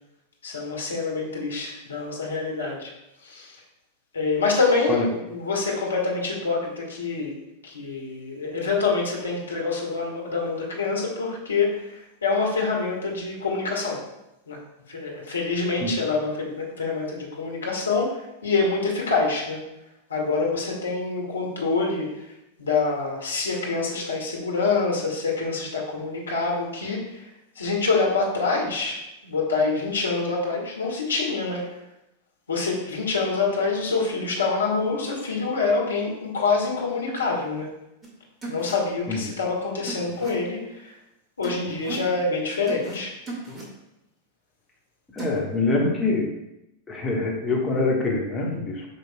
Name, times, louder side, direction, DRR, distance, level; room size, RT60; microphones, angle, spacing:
voice 1, 0.4-2.9 3.2-3.6 4.1-7.3 7.6-14.0 14.5-14.6 14.9-19.6 20.1-22.3 22.6-27.3 27.5-31.7 32.5-37.7 38.5-40.9 41.4-43.1, left 4 dB, 70° left, -2 dB, 1.6 m, -26 dB
sound 1, 38.0-38.1 38.4-38.7 39.9-40.3 41.4-42.1 42.7-43.0 43.3-43.6 45.2-45.4, right 2 dB, 10° right, 1.9 m, -35 dB
voice 2, 45.1-46.3 46.9-48.9, left 3 dB, 15° left, -2 dB, 1.5 m, -24 dB
8.0 x 5.1 x 2.3 m, 0.89 s
figure-of-eight pair, 90°, 0 cm